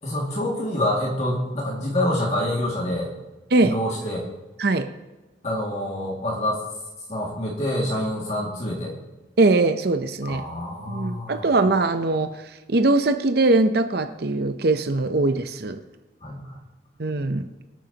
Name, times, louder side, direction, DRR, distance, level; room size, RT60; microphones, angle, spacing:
voice 1, 0.0-3.1 3.6-4.3 5.4-6.6 7.1-8.9 10.2-11.5 16.2-16.6, left 1 dB, 35° left, -3 dB, 2.2 m, -26 dB
voice 2, 4.6-4.9 9.4-10.4 10.9-15.8 17.0-17.5, right 2 dB, 55° right, 8 dB, 0.7 m, -21 dB
23.0 x 9.1 x 2.9 m, 1.1 s
head